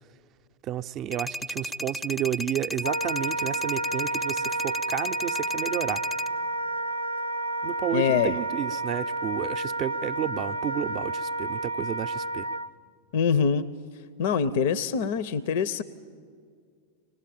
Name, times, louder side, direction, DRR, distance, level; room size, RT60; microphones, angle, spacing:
voice 1, 0.6-6.0 7.6-12.5, right 11 dB, 35° right, 12 dB, 0.5 m, -31 dB
sound 1, 1.1-6.3, equal, 10° left, 0.5 m, -34 dB
Wind instrument woodwind instrument, 2.8-12.7, right 2 dB, 90° right, 0.6 m, -31 dB
voice 2, 7.9-8.4 13.1-13.7 14.2-15.8, left 6 dB, 55° left, 17 dB, 0.6 m, -24 dB
24.0 x 19.0 x 8.9 m, 2.1 s
figure-of-eight pair, 90°, 0 cm